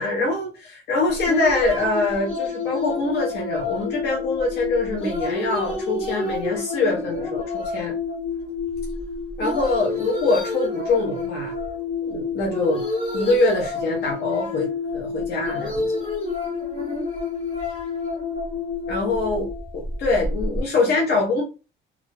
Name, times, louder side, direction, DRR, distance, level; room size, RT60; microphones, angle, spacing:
voice 1, 0.0-8.0 9.4-11.5 12.0-12.8 13.1-15.9 18.9-19.5 19.7-21.4, left 3 dB, 55° left, 0.7 m, -24 dB
sound 1, 1.1-20.6, left 3 dB, 30° left, 1.1 m, -29 dB
2.4 x 2.2 x 3.1 m
cardioid pair, 160°, 20 cm